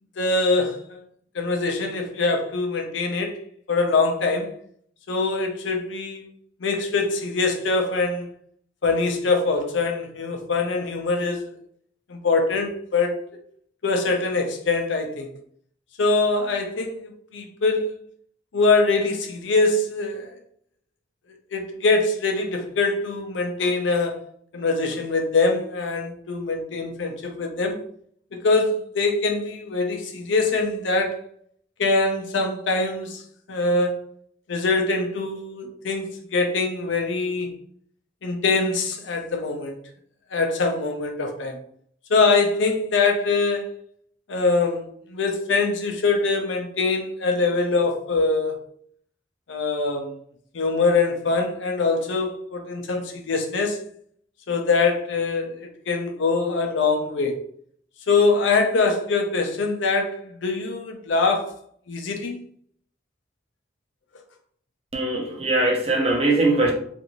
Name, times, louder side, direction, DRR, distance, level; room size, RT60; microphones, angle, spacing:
voice 1, 0.2-1.0 1.3-3.4 3.7-4.5 5.1-6.2 6.6-8.3 8.8-11.5 12.1-13.1 13.8-15.3 16.0-18.0 18.5-20.3 21.5-24.2 24.5-27.8 28.3-31.2 31.8-33.2 33.5-34.0 34.5-37.5 38.2-39.8 40.3-41.6 42.1-43.7 44.3-48.6 49.5-50.2 50.5-53.8 54.5-57.4 58.1-61.5 61.9-62.4, left 3 dB, 80° left, 0.5 m, -23 dB
voice 2, 64.9-66.7, right 2 dB, 30° right, 0.6 m, -21 dB
2.6 x 2.5 x 2.9 m
head